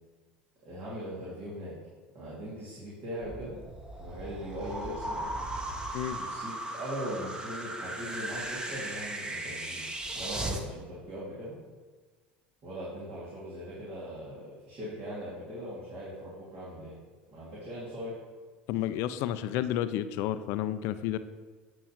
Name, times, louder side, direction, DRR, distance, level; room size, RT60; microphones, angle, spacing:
voice 1, 0.6-1.7 2.1-3.6 4.0-5.3 6.2-9.9 10.1-11.6 12.6-17.0 17.3-18.2, equal, 55° right, -8 dB, 2.4 m, -40 dB
sound 1, 3.2-10.6, right 1 dB, 15° right, 1.0 m, -37 dB
voice 2, 18.7-21.2, left 12 dB, 60° left, 12 dB, 0.4 m, -31 dB
8.9 x 6.1 x 3.0 m, 1.4 s
hypercardioid pair, 75°, 5 cm